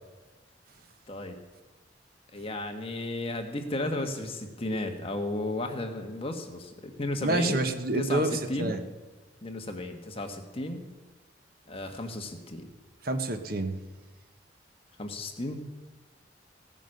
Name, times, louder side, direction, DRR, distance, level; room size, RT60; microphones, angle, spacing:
voice 1, 2.3-7.6 7.9-8.7 9.4-10.8 11.7-12.7 15.0-15.6, left 1 dB, 30° left, 4 dB, 1.4 m, -34 dB
voice 2, 7.2-8.8 13.0-13.7, right 2 dB, 50° right, 8 dB, 1.1 m, -28 dB
16.5 x 9.2 x 6.5 m, 1.2 s
head